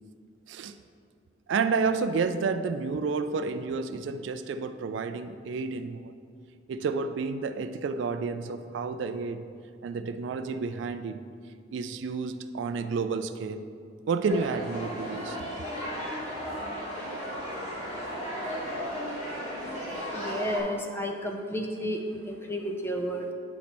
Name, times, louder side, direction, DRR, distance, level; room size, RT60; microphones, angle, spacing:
voice 1, 1.5-6.1 6.7-9.5 9.8-11.2 11.7-13.6 14.1-15.4, right 4 dB, 70° right, 11 dB, 0.3 m, -30 dB
sound 1, 14.3-20.6, equal, 35° left, 1.7 m, -35 dB
voice 2, 20.1-23.3, equal, 10° left, 2 dB, 0.5 m, -32 dB
9.2 x 4.2 x 4.3 m, 2.2 s
head